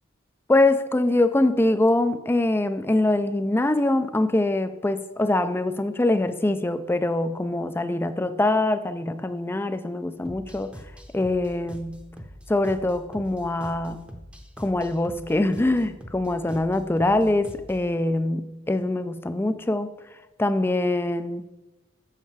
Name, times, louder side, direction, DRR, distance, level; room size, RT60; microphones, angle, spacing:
voice 1, 0.5-10.7 11.1-12.0 12.5-14.1 14.6-19.9 20.4-21.4, left 2 dB, 10° left, 11 dB, 0.4 m, -23 dB
sound 1, 10.2-17.9, equal, 5° right, 0.7 m, -43 dB
7.3 x 6.8 x 4.7 m, 1.0 s
head